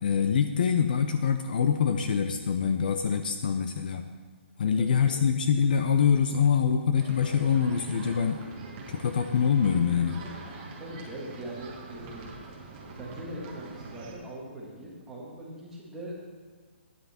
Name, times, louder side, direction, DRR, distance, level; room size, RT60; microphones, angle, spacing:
voice 1, 0.0-4.0 4.6-8.4 8.9-10.2, left 7 dB, 45° left, 7 dB, 0.6 m, -25 dB
voice 2, 4.7-5.2 10.8-12.3 13.0-16.1, right 1 dB, 5° right, -6 dB, 1.7 m, -41 dB
sound 1, 6.9-14.1, right 3 dB, 20° right, 1.3 m, -44 dB
11.5 x 9.6 x 4.3 m, 1.5 s
hypercardioid pair, 175°, 7 cm